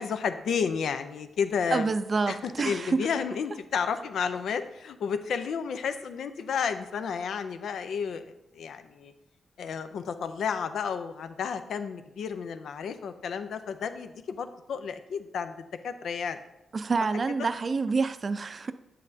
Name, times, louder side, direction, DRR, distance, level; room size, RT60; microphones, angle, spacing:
voice 1, 0.0-1.9 2.3-9.1 9.6-16.4 17.4-17.5, left 6 dB, 80° left, 9 dB, 0.5 m, -32 dB
voice 2, 1.7-3.1 16.7-18.7, right 4 dB, 45° right, 11 dB, 0.4 m, -27 dB
8.2 x 7.5 x 2.7 m, 0.92 s
cardioid pair, 80°, 0 cm